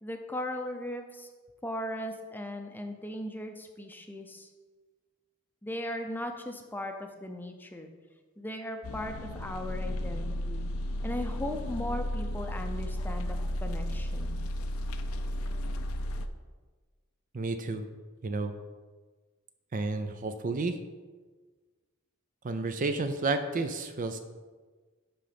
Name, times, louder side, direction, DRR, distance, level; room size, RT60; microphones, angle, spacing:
voice 1, 0.0-1.3 1.6-4.5 5.6-7.9 8.4-10.7 11.0-14.4, left 1 dB, 10° left, 4 dB, 0.6 m, -38 dB
sound 1, 8.8-16.3, left 1 dB, 80° left, 0.5 m, -33 dB
voice 2, 17.3-17.8 18.2-18.5 19.7-20.8 22.4-24.2, right 3 dB, 40° right, 8 dB, 0.5 m, -31 dB
11.0 x 3.9 x 5.1 m, 1.4 s
head